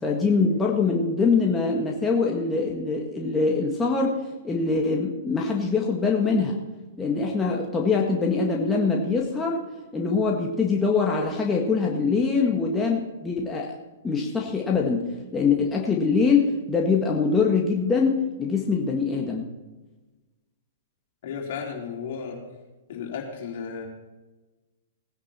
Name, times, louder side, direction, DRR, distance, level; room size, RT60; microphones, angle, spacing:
voice 1, 0.0-4.2 4.4-6.6 7.0-9.6 9.9-13.8 14.0-15.1 15.3-19.4, left 4 dB, 15° left, -1 dB, 1.8 m, -23 dB
voice 2, 21.2-22.4 22.9-23.9, left 6 dB, 55° left, 0 dB, 4.1 m, -34 dB
18.5 x 10.5 x 4.4 m, 1.2 s
hypercardioid pair, 115°, 0 cm